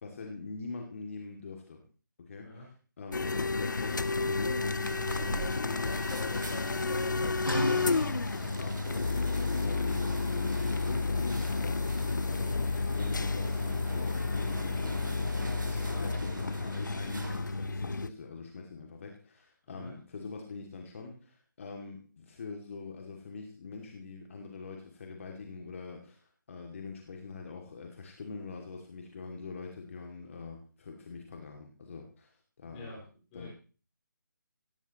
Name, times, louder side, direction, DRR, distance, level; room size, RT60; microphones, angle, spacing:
voice 1, 0.0-1.8 2.3-2.6 3.0-3.3 3.6-32.9 33.3-33.5, left 4 dB, 40° left, 1 dB, 2.5 m, -44 dB
Vending Coffe Machine, 3.1-18.1, left 3 dB, 65° left, 0.8 m, -31 dB
sound 1, 4.8-17.7, right 2 dB, 70° right, 2.7 m, -45 dB
sound 2, 7.4-13.1, equal, 85° left, 6.5 m, -39 dB
voice 2, 19.6-19.9 32.6-33.5, left 2 dB, 20° left, -3 dB, 5.9 m, -48 dB
17.5 x 16.0 x 3.1 m, 0.38 s
figure-of-eight pair, 150°, 11 cm